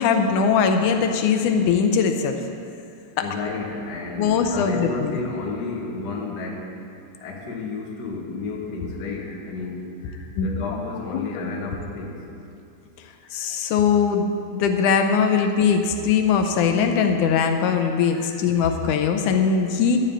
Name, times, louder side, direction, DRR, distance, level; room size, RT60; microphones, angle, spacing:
voice 1, 0.0-2.4 3.2-3.3 4.2-5.1 10.4-10.5 11.1-11.2 13.3-20.0, left 6 dB, 80° left, 5 dB, 2.2 m, -21 dB
voice 2, 3.2-6.8 7.2-12.3 13.2-13.5 15.3-15.5 18.1-18.4, left 3 dB, 45° left, -1 dB, 1.5 m, -32 dB
13.0 x 5.5 x 8.8 m, 2.6 s
omnidirectional pair, 3.5 m